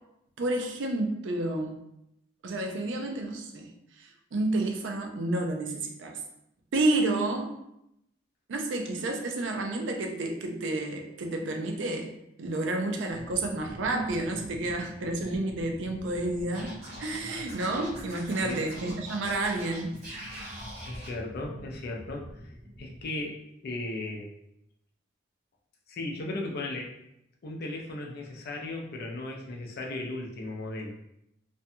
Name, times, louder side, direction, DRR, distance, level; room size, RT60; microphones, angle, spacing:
voice 1, 0.4-1.7 2.4-3.7 4.0-6.2 6.7-7.5 8.5-12.1 12.4-19.9, right 2 dB, 75° right, 3 dB, 0.4 m, -30 dB
sound 1, 13.1-23.1, equal, 30° right, 0.8 m, -46 dB
Scratching (performance technique), 16.5-21.1, right 1 dB, 55° right, 1.2 m, -44 dB
voice 2, 20.9-24.3 25.9-26.9 27.4-30.9, left 2 dB, 55° left, 0 dB, 0.5 m, -36 dB
2.5 x 2.2 x 2.6 m, 0.81 s
head